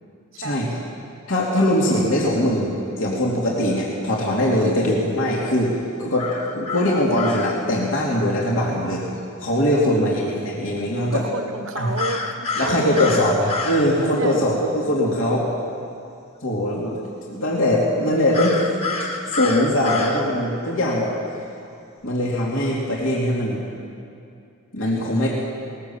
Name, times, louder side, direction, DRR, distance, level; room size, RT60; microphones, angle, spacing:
voice 1, 0.4-0.7 4.6-4.9 9.8-10.1 11.1-13.2 14.2-14.6 20.1-20.5, right 3 dB, 70° right, 7 dB, 1.3 m, -31 dB
voice 2, 1.3-9.0 9.4-11.2 11.8-11.9 12.6-15.5 16.4-17.0 17.3-18.7 19.0-21.1 22.0-23.6 24.7-25.3, left 1 dB, 70° left, -4 dB, 2.9 m, -21 dB
sound 1, 6.2-7.5 12.0-13.9 18.3-20.2, left 4 dB, 30° left, 1.6 m, -28 dB
20.5 x 18.0 x 7.2 m, 2.5 s
head